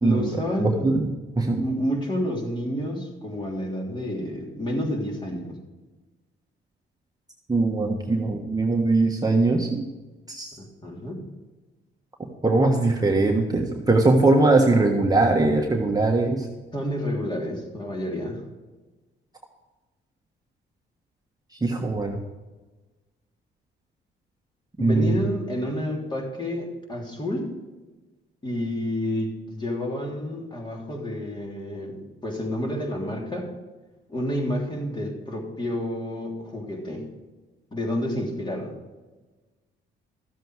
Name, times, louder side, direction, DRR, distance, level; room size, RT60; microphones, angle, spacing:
voice 1, 0.0-0.9 1.6-5.6 10.6-11.2 16.7-18.4 24.8-27.5 28.4-33.5 34.1-37.0 37.7-38.7, left 1 dB, 25° left, -1 dB, 3.3 m, -29 dB
voice 2, 0.6-1.1 1.4-1.6 7.5-9.8 10.3-10.5 12.4-16.5 21.6-22.2 24.8-25.3, right 2 dB, 20° right, 1 dB, 1.4 m, -21 dB
13.5 x 7.7 x 4.8 m, 1.2 s
cardioid pair, 90°, 20 cm